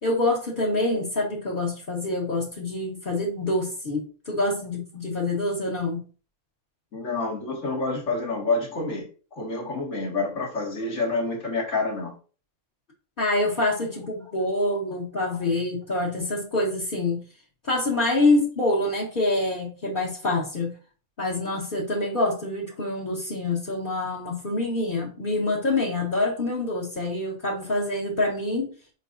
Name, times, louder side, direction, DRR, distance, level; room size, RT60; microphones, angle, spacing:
voice 1, 0.0-6.1 13.2-17.2 17.6-20.8 21.2-28.7, left 2 dB, 40° left, -2 dB, 1.7 m, -26 dB
voice 2, 6.9-9.1 9.4-12.1, left 3 dB, 60° left, -1 dB, 2.2 m, -28 dB
8.2 x 5.1 x 2.6 m, 0.38 s
omnidirectional pair, 1.5 m